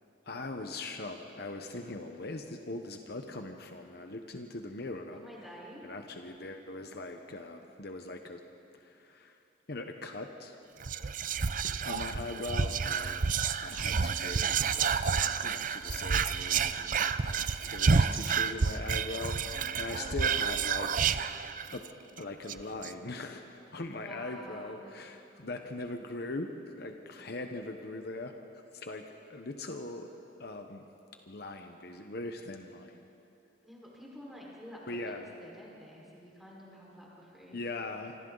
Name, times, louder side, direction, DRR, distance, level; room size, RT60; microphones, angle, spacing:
voice 1, 0.3-5.2 5.8-8.4 8.7-9.4 9.7-10.6 11.6-21.5 21.7-21.8 22.2-28.4 28.7-30.1 30.4-30.9 31.3-33.1 34.9-35.3 37.5-38.2, left 2 dB, 60° left, 5 dB, 1.1 m, -41 dB
voice 2, 5.1-5.8 19.4-20.4 23.9-24.8 33.6-35.1 35.4-37.6, equal, ahead, -5 dB, 4.8 m, -49 dB
Whispering, 10.8-21.9 22.2-22.3 22.5-22.9, right 5 dB, 45° right, 0.6 m, -30 dB
26.0 x 26.0 x 4.0 m, 2.8 s
head